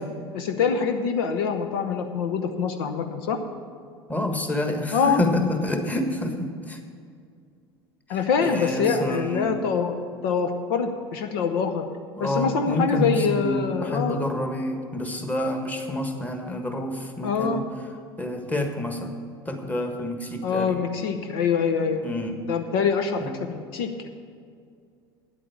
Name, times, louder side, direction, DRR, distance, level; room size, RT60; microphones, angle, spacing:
voice 1, 0.3-3.4 4.9-5.3 8.1-10.0 10.2-11.8 12.2-14.3 17.2-17.6 20.4-22.0 22.5-24.1, left 6 dB, 65° left, 6 dB, 0.8 m, -25 dB
voice 2, 4.1-6.8 8.4-9.6 12.1-17.6 18.2-19.1 19.5-20.8 22.0-22.3 23.2-23.3, left 1 dB, 10° left, 4 dB, 1.5 m, -28 dB
9.8 x 8.5 x 7.2 m, 2.2 s
hypercardioid pair, 75°, 13 cm